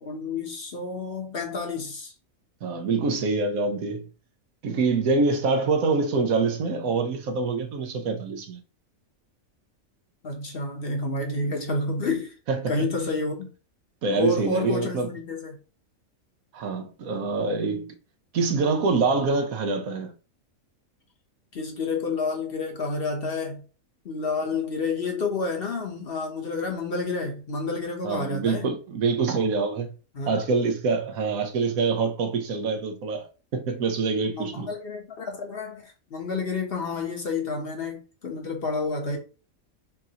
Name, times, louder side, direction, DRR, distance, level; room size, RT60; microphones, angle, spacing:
voice 1, 0.0-2.1 10.2-12.3 12.7-13.5 14.1-15.6 21.5-23.6 24.0-28.7 30.1-30.4 34.3-39.2, left 3 dB, 50° left, 1.0 m, -29 dB
voice 2, 2.6-4.1 4.6-8.6 12.5-12.7 14.0-15.1 16.5-17.9 18.3-20.1 28.0-29.9 30.3-33.3 33.5-34.7, right 4 dB, 80° right, 1.3 m, -25 dB
5.8 x 2.6 x 2.8 m
omnidirectional pair, 1.5 m